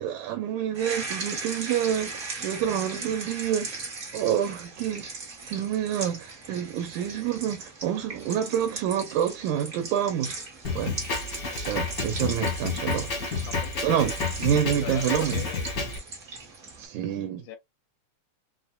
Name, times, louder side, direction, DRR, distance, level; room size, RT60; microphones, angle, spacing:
voice 1, 0.0-3.8 4.1-5.1 5.4-10.4 10.8-11.0 11.6-13.1 13.8-14.1 14.4-15.4 16.8-17.5, right 10 dB, 90° right, 2.1 m, -28 dB
sound 1, 0.7-16.9, right 3 dB, 65° right, 0.7 m, -38 dB
Drum kit, 10.6-16.0, left 4 dB, 65° left, 0.8 m, -30 dB
voice 2, 13.4-14.2 14.8-15.7 17.4-17.6, left 12 dB, 85° left, 2.0 m, -39 dB
4.9 x 2.1 x 2.2 m
omnidirectional pair, 3.3 m